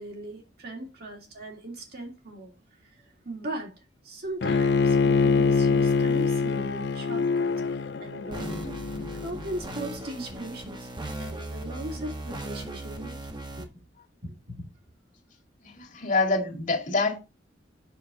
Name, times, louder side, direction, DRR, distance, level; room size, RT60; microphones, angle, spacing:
voice 1, 0.0-2.5 3.2-3.7 4.0-7.5 8.0-8.6 9.1-10.9 11.2-13.2 13.6-13.7 14.2-14.7, right 1 dB, 55° right, 2.7 m, -38 dB
Bowed string instrument, 4.4-9.5, left 4 dB, 60° left, 0.5 m, -24 dB
sound 1, 8.3-13.6, right 1 dB, 25° right, 1.3 m, -38 dB
voice 2, 15.6-17.2, left 3 dB, 45° left, 2.1 m, -26 dB
7.2 x 6.4 x 3.7 m
head